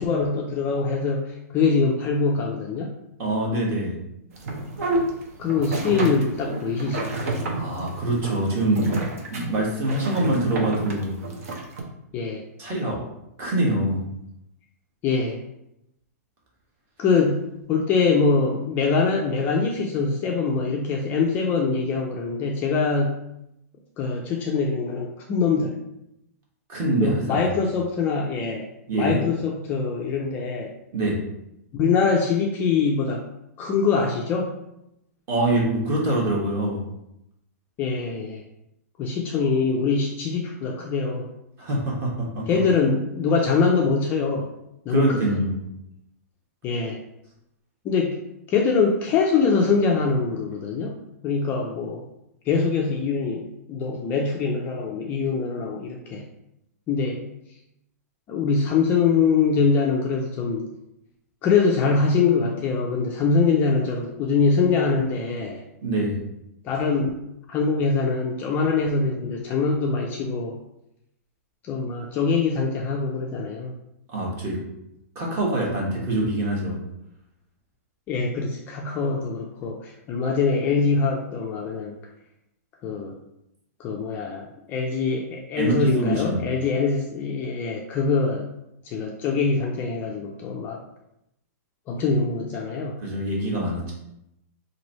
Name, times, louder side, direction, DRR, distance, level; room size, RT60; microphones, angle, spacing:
voice 1, 0.0-3.0 5.4-7.1 12.1-12.4 15.0-15.4 17.0-23.2 24.0-25.8 27.0-28.7 28.9-30.7 31.7-33.2 33.6-34.5 37.8-38.4 39.0-41.3 42.5-44.5 44.9-45.2 46.6-47.0 47.8-48.2 48.5-51.0 51.2-52.0 52.5-56.3 56.9-57.3 58.3-60.7 61.4-65.6 66.6-67.2 67.5-70.6 71.6-73.7 78.1-81.9 82.8-83.2 83.8-88.5 88.8-90.8 91.9-93.0, left 4 dB, 20° left, 0 dB, 0.3 m, -23 dB
voice 2, 3.2-4.0 7.5-11.2 12.6-13.0 13.4-14.0 26.7-27.5 28.9-29.2 30.9-31.2 35.3-36.8 41.6-42.5 44.9-45.6 65.8-66.2 74.1-74.6 75.1-76.8 85.6-86.4 93.0-93.9, right 1 dB, 30° right, -3 dB, 1.1 m, -24 dB
sound 1, 4.3-11.8, right 2 dB, 65° right, 0.9 m, -29 dB
3.0 x 2.6 x 4.1 m, 0.83 s
hypercardioid pair, 155°, 9 cm